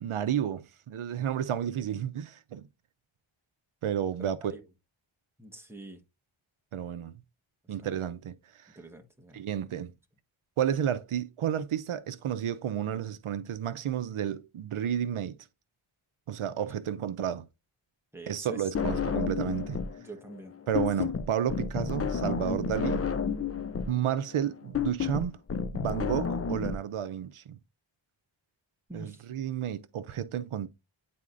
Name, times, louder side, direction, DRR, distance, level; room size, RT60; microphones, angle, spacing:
voice 1, 0.0-2.6 3.8-4.5 6.7-7.1 7.7-8.7 9.3-9.9 10.6-15.4 16.3-17.4 18.3-19.8 20.7-23.0 23.9-25.3 25.7-27.6 28.9-30.7, right 9 dB, 80° right, 0.6 m, -31 dB
voice 2, 4.2-4.6 5.4-6.0 7.8-7.9 8.7-9.4 18.1-18.7 20.0-20.5 28.9-29.2, right 2 dB, 5° right, 1.1 m, -45 dB
sound 1, 18.7-20.0 20.3-26.7, left 6 dB, 30° left, 0.4 m, -31 dB
9.8 x 4.2 x 2.5 m
wide cardioid pair, 100°, 49 cm